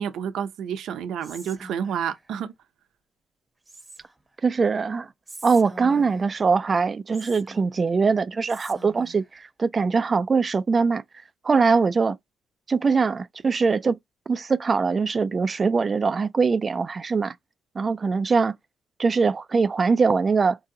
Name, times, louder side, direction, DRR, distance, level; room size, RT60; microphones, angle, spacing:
voice 1, 0.0-2.5, right 8 dB, 75° right, 0.7 m, -29 dB
Whispering, 1.2-2.3 3.7-4.3 5.3-6.4 7.1-8.0 8.5-9.3, right 2 dB, 20° right, 0.9 m, -45 dB
voice 2, 4.4-5.1 5.4-11.0 11.4-12.2 12.7-14.0 14.3-17.3 17.8-18.5 19.0-20.6, right 4 dB, 35° right, 0.4 m, -22 dB
4.6 x 2.8 x 3.8 m
cardioid pair, 90°, 0 cm